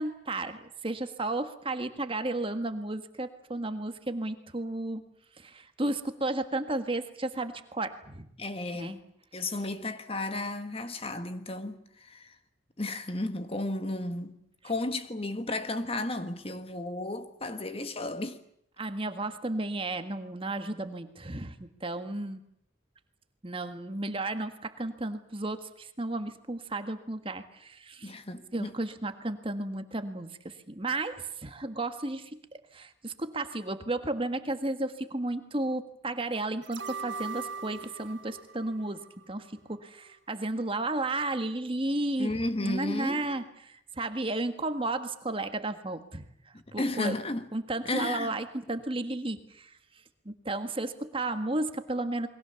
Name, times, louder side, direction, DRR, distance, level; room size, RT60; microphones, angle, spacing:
voice 1, 0.0-5.0 5.4-8.3 8.7-9.0 18.8-22.4 23.4-28.1 28.5-32.3 32.7-39.0 39.3-46.3 46.7-47.2 47.5-49.7 50.3-52.3, right 2 dB, 30° right, 1.6 m, -33 dB
voice 2, 8.4-9.0 9.3-12.4 12.8-14.4 14.6-18.4 28.0-28.7 42.2-43.3 46.5-47.5 47.8-48.4, left 2 dB, 30° left, 1.6 m, -33 dB
sound 1, 36.6-39.8 40.1-40.2, right 5 dB, 80° right, 2.3 m, -41 dB
29.0 x 22.5 x 7.1 m
head